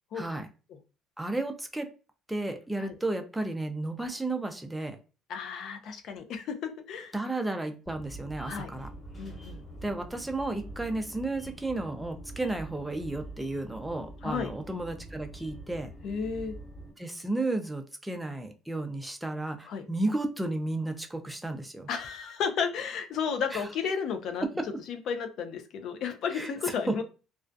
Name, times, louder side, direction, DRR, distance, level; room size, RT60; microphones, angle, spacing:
voice 1, 0.1-0.5 1.2-1.9 2.3-5.0 7.1-8.9 9.8-15.9 17.0-21.9 23.5-23.6 24.6-24.7 26.3-27.0, right 2 dB, 5° right, 5 dB, 0.4 m, -33 dB
voice 2, 5.3-7.2 8.5-8.7 9.2-9.6 14.2-14.5 16.0-16.6 19.7-19.8 21.9-24.4 24.9-27.0, left 6 dB, 65° left, 6 dB, 0.4 m, -33 dB
sound 1, 7.9-16.9, right 1 dB, 35° left, 1.4 m, -45 dB
2.3 x 2.2 x 2.5 m, 0.34 s
cardioid pair, 110°, 0 cm